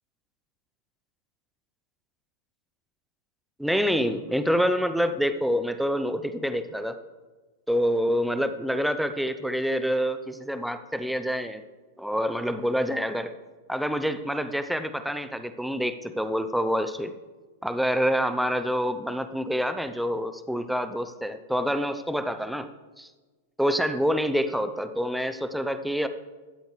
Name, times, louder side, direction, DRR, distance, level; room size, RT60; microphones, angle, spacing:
voice 1, 3.6-7.0 7.7-11.6 12.0-13.3 13.7-17.1 17.6-22.7 23.0-23.1 23.6-26.1, equal, ahead, 10 dB, 0.7 m, -27 dB
18.0 x 13.0 x 3.3 m, 1.3 s
figure-of-eight pair, 100°, 0 cm